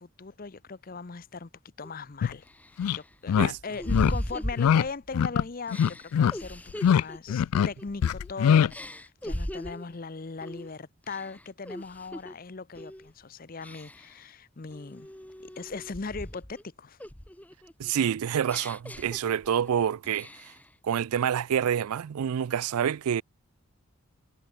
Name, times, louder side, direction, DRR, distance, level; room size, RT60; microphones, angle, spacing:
voice 1, 0.0-1.5 1.8-2.5 2.8-15.1 15.4-17.0, left 4 dB, 40° left, 0.6 m, -39 dB
sound 1, 1.8-1.9 2.5-5.2 5.7-8.3 8.7-9.9 10.4-10.7 11.0-12.3 12.7-13.1 13.6-14.2 14.7-16.6 17.0-19.7 20.0-20.7, equal, 5° left, 0.8 m, -38 dB
sound 2, 2.2-2.3 2.8-3.0 3.3-3.5 3.9-4.1 4.6-4.8 5.1-5.4 5.7-6.3 6.7-7.0 7.3-7.7 8.0-8.7, left 8 dB, 80° left, 0.3 m, -22 dB
voice 2, 17.8-20.3 20.8-23.2, right 8 dB, 80° right, 0.4 m, -27 dB
head